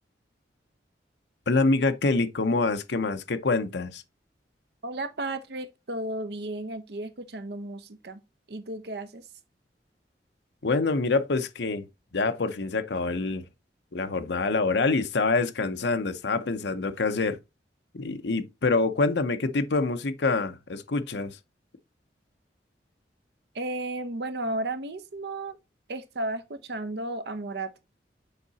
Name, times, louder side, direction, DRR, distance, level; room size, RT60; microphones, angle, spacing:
voice 1, 1.5-4.0 10.6-11.9 12.1-13.4 13.9-17.4 17.9-21.4, left 3 dB, 75° left, 0.7 m, -26 dB
voice 2, 4.8-8.2 8.5-9.3 23.5-25.6 25.9-27.7, right 2 dB, 65° right, 0.9 m, -34 dB
6.9 x 4.7 x 4.0 m
head